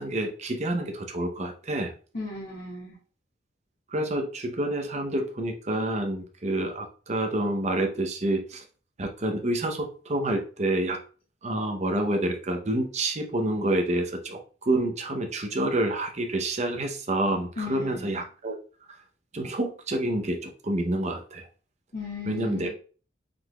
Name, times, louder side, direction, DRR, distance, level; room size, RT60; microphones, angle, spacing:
voice 1, 0.0-1.9 3.9-8.6 9.0-11.0 11.4-18.6 19.3-21.5 22.3-22.7, right 1 dB, 40° right, 4 dB, 0.8 m, -28 dB
voice 2, 2.1-3.0 17.6-18.2 21.9-22.7, left 4 dB, 60° left, -9 dB, 2.0 m, -36 dB
5.0 x 3.9 x 2.3 m, 0.37 s
head